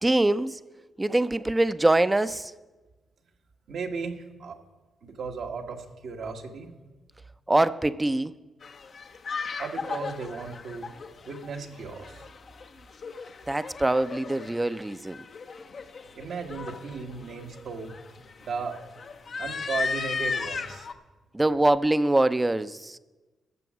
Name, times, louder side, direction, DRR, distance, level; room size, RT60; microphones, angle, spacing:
voice 1, 0.0-0.6 1.0-2.5 7.5-8.3 13.5-15.2 21.3-23.0, right 2 dB, 20° right, 0.6 m, -23 dB
voice 2, 3.7-4.6 5.0-6.7 9.6-10.9 11.2-12.2 16.1-18.0 18.4-18.8 19.4-20.9, right 4 dB, 65° right, 1.3 m, -35 dB
sound 1, 8.6-20.9, left 4 dB, 55° left, 0.7 m, -36 dB
14.0 x 7.0 x 6.1 m
hypercardioid pair, 45°, 0 cm